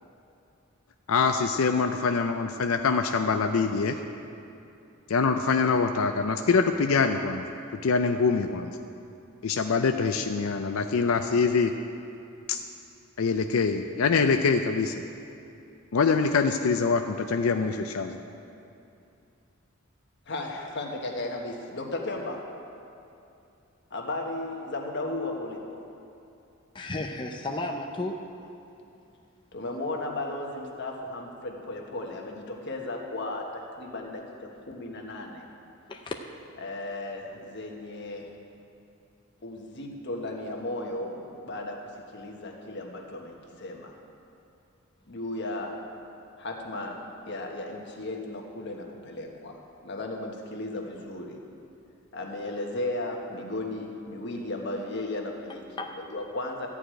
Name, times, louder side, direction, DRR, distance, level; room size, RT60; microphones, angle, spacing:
voice 1, 1.1-4.0 5.1-7.5 7.8-8.7 9.4-11.7 12.5-12.6 13.2-14.9 15.9-18.2, left 4 dB, 85° left, 6 dB, 0.5 m, -24 dB
voice 2, 20.3-22.5 23.9-25.8 29.5-35.4 36.6-38.3 39.4-43.9 45.1-45.8 46.4-51.4 52.1-55.6 55.9-56.7, left 2 dB, 60° left, 1 dB, 1.4 m, -35 dB
voice 3, 26.7-28.1 29.7-29.8 35.9-36.2 55.8-56.0, left 2 dB, 25° left, 2 dB, 0.6 m, -33 dB
13.5 x 4.9 x 8.9 m, 2.7 s
head